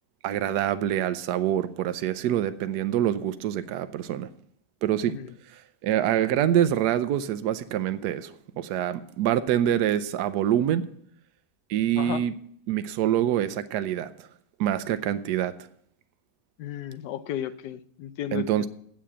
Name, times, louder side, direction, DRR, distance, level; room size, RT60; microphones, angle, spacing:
voice 1, 0.2-4.3 4.8-5.1 5.5-10.8 11.7-12.3 12.7-14.3 14.6-15.5 18.3-18.7, right 11 dB, 80° right, 12 dB, 1.2 m, -25 dB
voice 2, 16.6-18.7, left 11 dB, 85° left, 14 dB, 1.2 m, -34 dB
8.2 x 7.6 x 8.7 m, 0.68 s
omnidirectional pair, 1.8 m